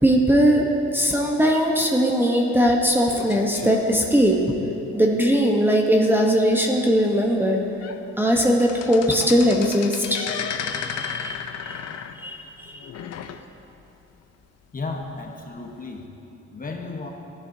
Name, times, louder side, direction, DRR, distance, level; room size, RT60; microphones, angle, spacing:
voice 1, 0.0-4.4 4.9-7.6 8.2-11.8 12.1-12.9, equal, 5° right, 0 dB, 0.9 m, -20 dB
sound 1, 2.7-4.9 5.4-5.5 5.9-6.0 6.5-6.6 7.2-7.3 7.6-8.0 8.3-13.8 14.2-14.3 15.1-15.2, left 8 dB, 55° left, 0.6 m, -34 dB
voice 2, 14.7-16.1 16.5-17.1, left 3 dB, 30° left, 2 dB, 1.1 m, -33 dB
14.5 x 10.5 x 2.7 m, 2.9 s
cardioid pair, 90°, 30 cm